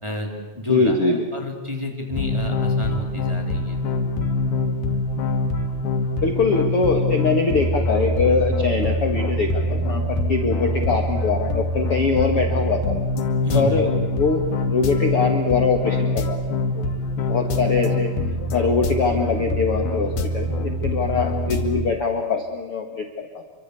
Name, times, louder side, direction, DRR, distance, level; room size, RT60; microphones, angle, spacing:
voice 1, 0.0-3.8 13.4-13.9, left 1 dB, 10° right, 1 dB, 3.5 m, -29 dB
voice 2, 0.7-1.3 6.2-12.9 13.5-16.9 17.3-18.1 18.5-23.3, left 4 dB, 45° left, 3 dB, 2.3 m, -22 dB
sound 1, 2.1-21.9, left 1 dB, 80° left, 4.1 m, -24 dB
28.0 x 25.0 x 8.5 m, 1.2 s
omnidirectional pair, 4.3 m